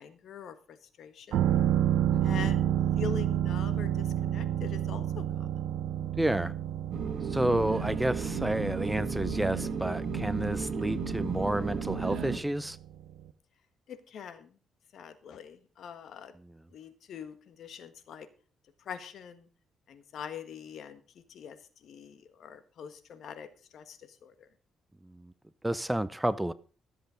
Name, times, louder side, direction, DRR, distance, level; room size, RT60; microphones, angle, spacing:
voice 1, 0.0-1.5 2.2-2.7 2.9-5.5 13.9-14.5 14.9-16.3 16.7-18.3 18.8-19.5 19.9-21.0 21.3-24.5, left 7 dB, 65° left, 1.4 m, -44 dB
sound 1, 1.3-12.9 13.2-13.3, right 11 dB, 85° right, 0.9 m, -30 dB
voice 2, 2.1-2.5 6.0-6.5 7.3-12.8 25.1-25.3 25.6-26.5, right 1 dB, 10° right, 0.6 m, -30 dB
sound 2, 6.9-12.4, right 5 dB, 60° right, 1.9 m, -33 dB
13.5 x 7.6 x 5.1 m
cardioid pair, 90°, 0 cm